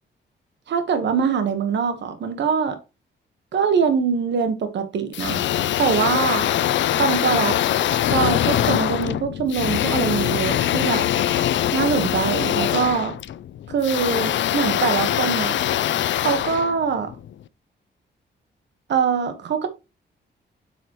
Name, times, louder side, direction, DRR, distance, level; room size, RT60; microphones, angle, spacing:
voice 1, 0.7-2.8 3.5-5.4 5.8-6.5 7.0-7.6 8.1-11.1 11.7-13.2 13.7-15.6 16.2-17.1 18.9-19.7, right 6 dB, 65° right, 1.2 m, -23 dB
sound 1, 5.1-17.3, left 11 dB, 75° left, 0.5 m, -23 dB
7.6 x 7.1 x 2.9 m
wide cardioid pair, 165°, 19 cm